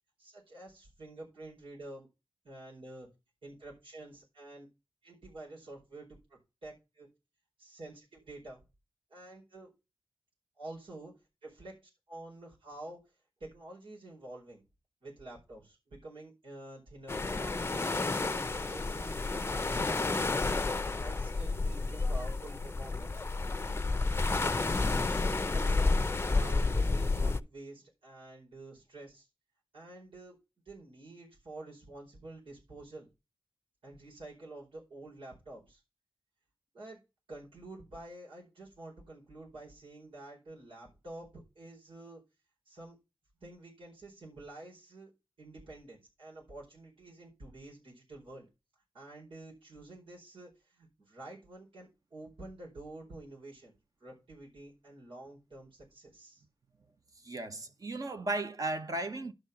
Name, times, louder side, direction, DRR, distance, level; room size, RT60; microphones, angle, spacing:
voice 1, 0.2-2.1 2.4-3.1 3.4-4.7 5.0-6.1 6.6-7.1 7.6-8.6 9.1-9.7 10.6-11.1 11.4-11.8 12.1-13.0 13.4-14.6 15.0-20.0 20.9-23.2 24.1-24.3 24.7-29.3 29.7-30.4 30.6-33.1 33.8-35.8 36.7-37.0 37.3-42.2 42.6-43.0 43.4-45.1 45.4-48.5 48.9-53.7 54.0-56.4, right 2 dB, 85° right, 4.7 m, -49 dB
sound 1, 17.1-27.4, left 3 dB, 30° left, 0.6 m, -30 dB
voice 2, 57.2-59.3, right 2 dB, 40° right, 1.1 m, -35 dB
11.5 x 4.6 x 6.0 m
wide cardioid pair, 105°, 9 cm